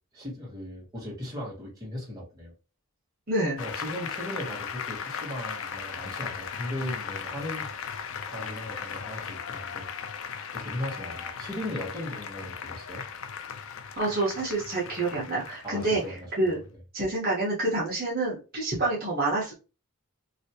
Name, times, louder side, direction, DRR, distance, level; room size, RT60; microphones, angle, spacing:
voice 1, 0.1-2.5 3.6-7.7 8.3-9.9 10.2-13.0 15.6-16.8, left 1 dB, 15° right, -6 dB, 1.6 m, -37 dB
voice 2, 3.3-3.6 14.0-16.0 16.4-16.6 16.9-19.5, right 2 dB, 45° right, -6 dB, 1.3 m, -27 dB
Applause, 3.6-16.6, left 6 dB, 60° left, 0.4 m, -37 dB
3.1 x 2.8 x 2.8 m, 0.31 s
head